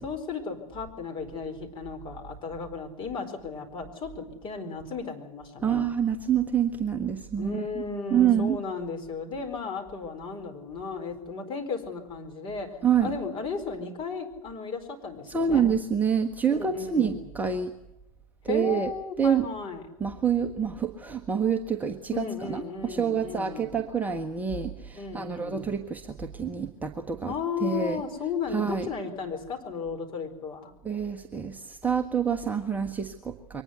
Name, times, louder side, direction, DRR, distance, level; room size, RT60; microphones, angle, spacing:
voice 1, 0.0-5.9 7.4-15.7 16.5-17.2 18.5-19.9 22.1-23.7 24.9-25.7 27.2-30.7, left 5 dB, 25° left, 4 dB, 4.4 m, -35 dB
voice 2, 5.6-7.7 8.1-8.6 12.8-13.1 15.3-17.7 18.5-18.9 19.2-19.5 20.0-27.3 27.6-28.0 28.5-28.9 30.8-33.6, right 7 dB, 10° right, 4 dB, 1.2 m, -27 dB
23.5 x 19.5 x 8.2 m, 0.88 s
figure-of-eight pair, 100°, 18 cm